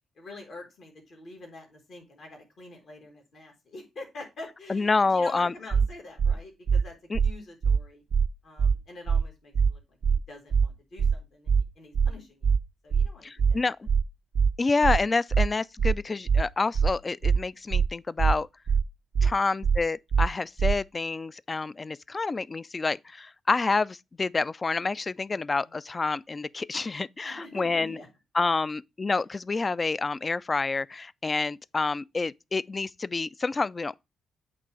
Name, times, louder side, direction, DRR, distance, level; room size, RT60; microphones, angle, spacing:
voice 1, 0.2-6.9 7.2-8.0 8.4-12.5 12.8-13.6 19.2-19.3 25.3-25.8 27.2-28.1, left 2 dB, 65° left, 1.9 m, -46 dB
voice 2, 4.7-5.5 7.1-7.2 13.2-13.9 14.6-18.5 19.2-28.0 28.3-34.0, left 3 dB, 35° left, 0.3 m, -28 dB
sound 1, 5.7-5.9 6.2-6.3 6.7-6.8 7.1-7.3 7.6-7.8 8.1-8.3 8.6-8.7 9.1-9.2 9.5-9.7 10.0-10.2 10.5-10.7 11.0-11.1 11.5-11.6 11.9-12.1 12.4-12.6 12.9-13.1 13.4-13.5 13.9-14.0 14.3-14.5 14.8-15.0 15.3-15.5 15.8-15.9 16.3-16.4 16.7-16.9 17.2-17.4 17.7-17.9 18.2-18.3 18.7-18.8 19.1-19.3 19.6-19.8 20.1-20.3 20.6-20.7, right 6 dB, 60° right, 0.4 m, -22 dB
8.4 x 3.0 x 4.7 m
hypercardioid pair, 40°, 0 cm